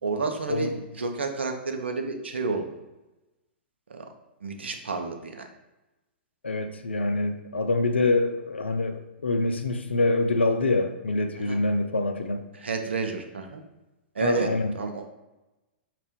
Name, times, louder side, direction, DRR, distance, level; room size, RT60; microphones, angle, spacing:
voice 1, 0.0-2.7 3.9-4.1 4.4-5.5 11.3-11.6 12.5-13.6 14.1-15.1, right 4 dB, 80° right, 4 dB, 0.6 m, -30 dB
voice 2, 6.4-12.5 14.2-14.7, left 2 dB, 85° left, 7 dB, 0.5 m, -25 dB
5.1 x 2.5 x 3.6 m, 1.0 s
hypercardioid pair, 110°, 6 cm